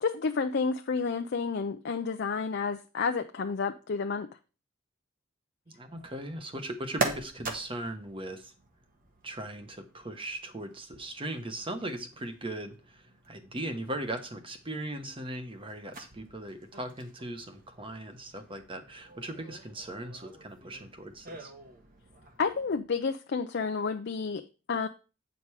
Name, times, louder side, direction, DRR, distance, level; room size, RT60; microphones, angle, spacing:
voice 1, 0.0-4.3 22.4-24.4 24.7-24.9, left 5 dB, 55° left, 6 dB, 0.5 m, -30 dB
voice 2, 5.7-8.5 9.2-21.5, right 1 dB, 25° right, 8 dB, 1.0 m, -39 dB
sound 1, 5.9-22.8, right 3 dB, 45° right, 1.4 m, -43 dB
8.7 x 5.2 x 4.7 m, 0.33 s
head